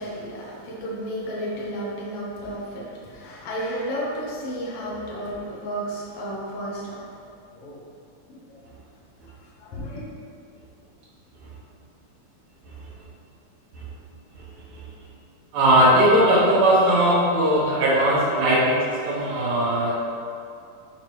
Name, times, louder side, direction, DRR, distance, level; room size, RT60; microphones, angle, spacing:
voice 1, 0.0-7.0 7.5-7.9 8.3-8.6 9.6-10.1, equal, 60° left, -5 dB, 2.0 m, -32 dB
voice 2, 15.5-20.1, right 1 dB, 75° right, -9 dB, 2.6 m, -19 dB
6.6 x 4.5 x 4.6 m, 2.5 s
omnidirectional pair, 3.4 m